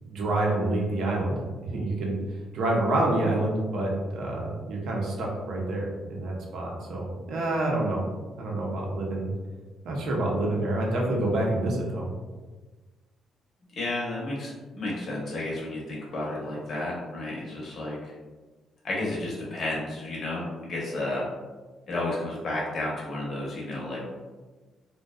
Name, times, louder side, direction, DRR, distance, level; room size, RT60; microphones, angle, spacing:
voice 1, 0.0-2.2 2.5-8.0 8.4-9.3 9.8-12.1, right 2 dB, 75° right, -2 dB, 0.6 m, -27 dB
voice 2, 13.8-18.1 18.8-21.2 21.9-24.0, left 2 dB, 50° left, -4 dB, 0.7 m, -32 dB
2.6 x 2.1 x 2.2 m, 1.3 s
cardioid pair, 90°, 0 cm